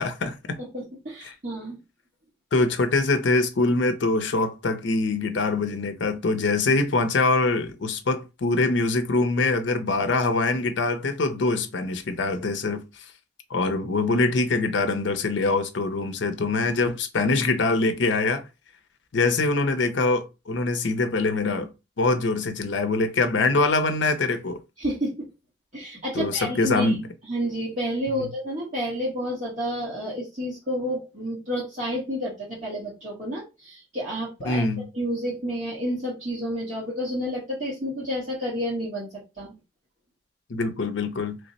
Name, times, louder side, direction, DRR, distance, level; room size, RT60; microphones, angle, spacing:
voice 1, 0.0-0.6 1.2-1.3 2.5-12.8 13.5-18.4 19.1-21.7 22.0-24.6 26.1-27.1 28.2-28.3 34.5-34.9 40.5-41.4, left 3 dB, 75° left, 0.5 m, -24 dB
voice 2, 0.6-1.8 24.8-25.3 25.7-27.0 27.2-34.6 34.9-39.1 39.4-39.5, equal, 40° right, 1.3 m, -30 dB
3.2 x 2.0 x 4.0 m
head